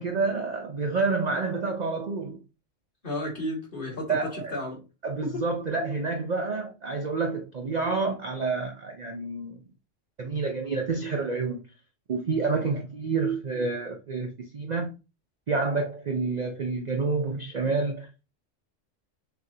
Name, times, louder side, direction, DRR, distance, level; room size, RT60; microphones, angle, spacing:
voice 1, 0.0-2.4 4.1-4.5 5.0-9.6 10.2-11.6 12.1-14.9 15.5-18.1, right 4 dB, 50° right, 0.5 m, -28 dB
voice 2, 3.0-4.8 5.2-5.4 12.6-12.8, left 1 dB, 45° left, 2.0 m, -33 dB
6.1 x 2.6 x 2.7 m
omnidirectional pair, 1.3 m